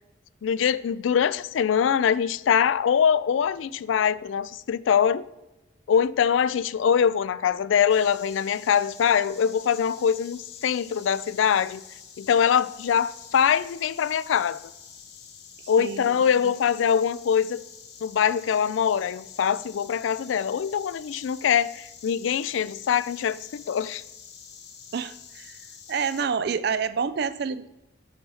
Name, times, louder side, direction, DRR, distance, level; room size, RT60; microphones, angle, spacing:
voice 1, 0.4-5.2 5.9-11.8 12.2-14.6 15.7-17.6 18.0-24.0, left 7 dB, 85° left, 0.3 m, -23 dB
Insect, 7.9-26.3, left 7 dB, 55° left, 0.9 m, -47 dB
voice 2, 15.8-16.1 16.4-16.5 24.9-25.6 25.9-27.7, right 6 dB, 55° right, 0.4 m, -28 dB
6.4 x 5.5 x 4.7 m
head